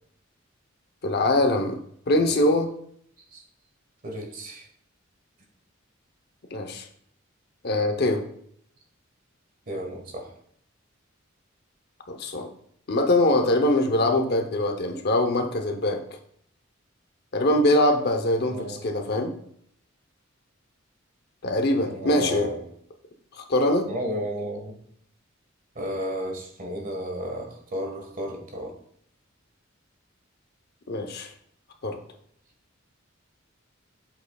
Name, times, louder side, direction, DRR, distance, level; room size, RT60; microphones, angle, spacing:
voice 1, 1.0-1.8 2.1-2.7 6.5-6.9 7.6-8.3 12.1-12.5 12.9-16.0 17.3-19.3 21.4-22.5 23.3-23.9 30.9-31.3 31.8-32.0, left 1 dB, 55° left, 6 dB, 0.8 m, -23 dB
voice 2, 2.1-2.5 3.3-3.4 4.0-4.7 9.7-10.3 18.5-18.9 21.9-22.6 23.9-24.8 25.7-28.7, equal, 45° right, 2 dB, 1.5 m, -33 dB
7.9 x 6.4 x 2.3 m, 0.68 s
head